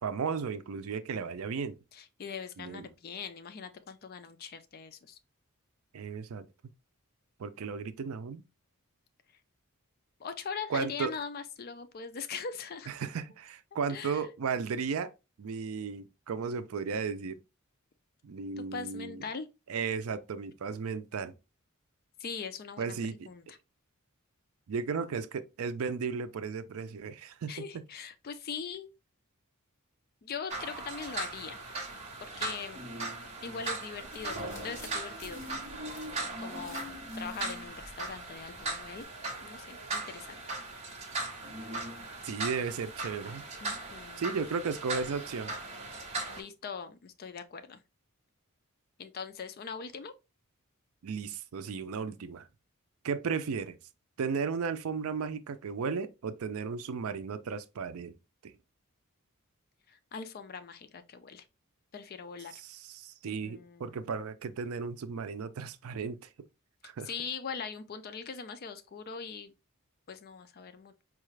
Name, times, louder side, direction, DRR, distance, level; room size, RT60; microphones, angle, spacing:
voice 1, 0.0-1.8 2.6-2.9 5.9-6.5 7.4-8.4 10.7-11.1 12.9-15.1 15.4-17.4 18.2-19.2 19.7-21.3 22.8-23.3 24.7-27.5 42.2-43.4 44.2-45.5 51.0-52.5 53.0-53.8 54.2-58.1 58.4-58.5 62.5-66.3 66.8-67.1, right 5 dB, 70° right, 0.4 m, -35 dB
voice 2, 1.9-5.2 10.2-12.9 13.9-14.3 18.6-19.5 22.2-23.0 23.2-23.6 27.5-28.9 30.2-31.6 32.2-32.9 33.4-35.6 35.8-36.0 36.4-39.0 39.4-40.4 43.6-44.4 46.4-47.8 49.0-50.1 59.9-61.4 61.9-62.5 63.4-64.0 67.0-69.5 70.1-71.0, left 6 dB, 45° left, 0.4 m, -41 dB
sound 1, 30.5-46.4, right 2 dB, 30° right, 1.1 m, -38 dB
sound 2, 34.0-39.1, equal, 15° left, 1.5 m, -54 dB
4.5 x 2.4 x 3.1 m
head